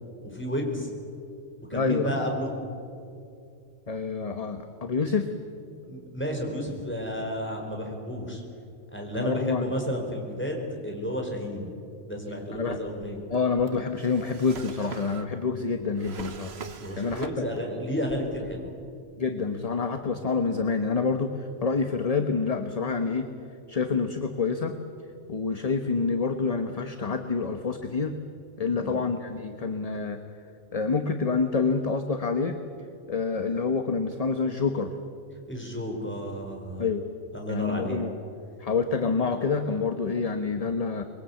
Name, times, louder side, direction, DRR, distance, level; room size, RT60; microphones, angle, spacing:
voice 1, 0.2-0.9 1.7-2.5 5.9-8.4 8.9-11.7 12.1-13.2 16.8-18.7 28.6-29.0 35.5-36.8 37.3-38.0, equal, 10° left, 1 dB, 4.2 m, -32 dB
voice 2, 1.7-2.1 3.9-5.3 9.1-9.6 12.5-12.8 13.3-16.5 17.0-17.4 19.2-23.3 23.7-24.7 25.3-28.1 28.6-30.2 30.7-32.6 33.1-34.9 36.8-37.1 37.5-38.2 38.6-41.0, left 4 dB, 35° left, 7 dB, 1.1 m, -27 dB
Drawer open or close, 12.5-17.7 18.0-18.9, right 5 dB, 60° right, 1.4 m, -44 dB
24.0 x 22.0 x 8.3 m, 2.5 s
omnidirectional pair, 1.2 m